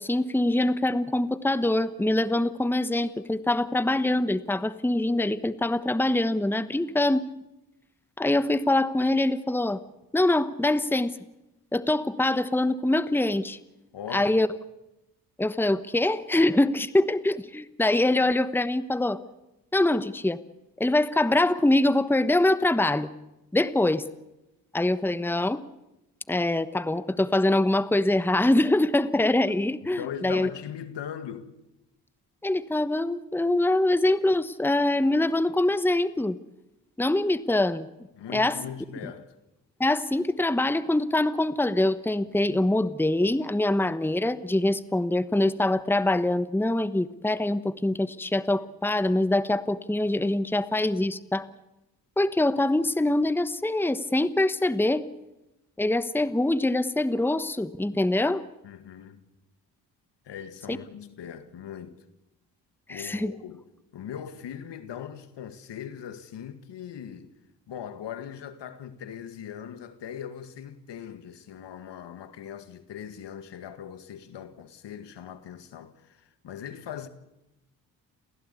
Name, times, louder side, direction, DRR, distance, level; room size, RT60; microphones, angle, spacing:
voice 1, 0.0-7.2 8.2-9.8 10.1-11.1 11.7-13.6 14.1-14.5 15.4-19.2 19.7-20.4 20.8-23.1 23.5-24.0 24.7-25.6 26.3-30.5 32.4-36.4 37.0-37.9 38.3-38.6 39.8-51.5 52.2-55.0 55.8-58.4 60.7-60.8 62.9-63.3, left 1 dB, 5° left, 1.2 m, -24 dB
voice 2, 13.9-14.4 29.9-31.6 38.1-39.4 58.6-59.2 60.3-62.0 62.9-63.7 63.9-67.3 67.7-77.1, left 9 dB, 70° left, 2.0 m, -40 dB
29.0 x 16.0 x 8.4 m
supercardioid pair, 50°, 44 cm